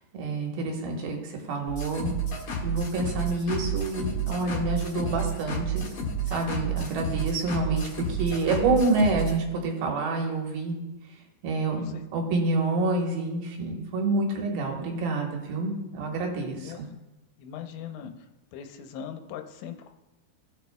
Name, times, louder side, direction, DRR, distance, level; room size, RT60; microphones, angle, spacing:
voice 1, 0.1-2.1 2.6-5.9 6.3-10.8 11.4-16.8, right 3 dB, 65° right, 1 dB, 2.8 m, -28 dB
sound 1, 1.7-9.4, right 4 dB, 50° left, 1.6 m, -31 dB
voice 2, 16.6-17.0 17.4-18.1 18.5-19.9, left 8 dB, 85° left, 5 dB, 3.0 m, -40 dB
17.5 x 6.2 x 2.3 m, 1.0 s
omnidirectional pair, 5.2 m